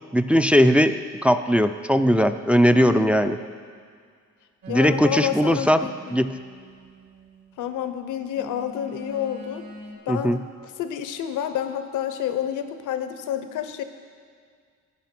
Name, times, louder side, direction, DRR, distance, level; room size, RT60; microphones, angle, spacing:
voice 1, 0.1-3.4 4.7-6.3 10.1-10.4, equal, 5° right, 8 dB, 0.3 m, -19 dB
voice 2, 2.7-3.4 4.7-5.9 7.6-9.7 10.1-10.4 10.8-13.8, left 9 dB, 85° left, 9 dB, 0.8 m, -29 dB
sound 1, 4.6-7.6 8.3-9.9, equal, 70° right, 3.2 m, -44 dB
14.5 x 5.2 x 5.9 m, 2.1 s
cardioid pair, 90°, 30 cm